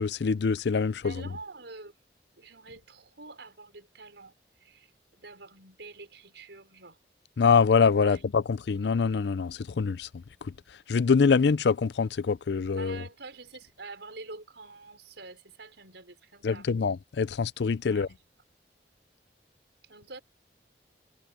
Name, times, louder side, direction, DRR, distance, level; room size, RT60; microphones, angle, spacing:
voice 1, 0.0-1.2 7.4-10.5 10.9-13.0 16.4-18.1, left 5 dB, 70° left, 0.5 m, -25 dB
voice 2, 1.0-2.0 2.4-4.3 4.6-7.0 8.0-8.2 12.7-16.7 17.8-18.2 19.8-20.2, right 3 dB, 80° right, 4.7 m, -46 dB
head